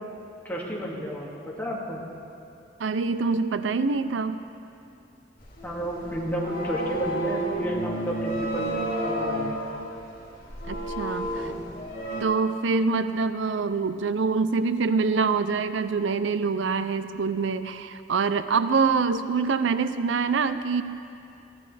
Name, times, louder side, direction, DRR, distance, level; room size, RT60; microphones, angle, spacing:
voice 1, 0.4-2.0 5.6-9.6 11.4-11.6, equal, 10° left, -4 dB, 2.1 m, -32 dB
voice 2, 2.8-4.4 10.7-11.5 12.2-20.8, right 4 dB, 80° right, 11 dB, 0.5 m, -25 dB
sound 1, 5.4-12.2, right 1 dB, 50° left, 3.2 m, -31 dB
22.0 x 14.5 x 3.4 m, 2.7 s
head